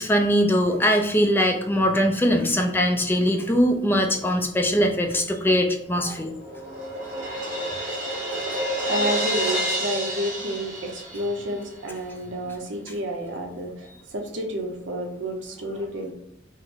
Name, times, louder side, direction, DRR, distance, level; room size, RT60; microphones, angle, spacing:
voice 1, 0.0-6.3, equal, 10° left, 3 dB, 0.4 m, -21 dB
Crash cymbal, 5.9-11.6, right 1 dB, 45° right, 1.4 m, -29 dB
voice 2, 8.9-16.1, right 1 dB, 80° right, 1 dB, 0.8 m, -30 dB
3.8 x 2.1 x 4.2 m, 0.77 s
head